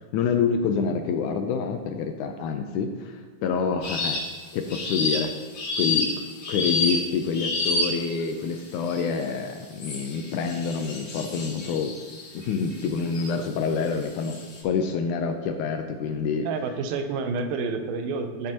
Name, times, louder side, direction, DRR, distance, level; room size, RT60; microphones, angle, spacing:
voice 1, 0.1-4.2 4.5-5.3 5.8-11.9 12.3-14.4 14.6-16.5, left 5 dB, 80° left, 5 dB, 1.8 m, -27 dB
sound 1, 3.8-4.3 4.7-8.2 8.9-9.2 9.8-13.3 13.9-14.6, left 3 dB, 55° left, 3.7 m, -29 dB
voice 2, 16.4-18.5, right 4 dB, 85° right, 7 dB, 2.5 m, -29 dB
15.0 x 6.8 x 2.9 m, 1.4 s
omnidirectional pair, 4.1 m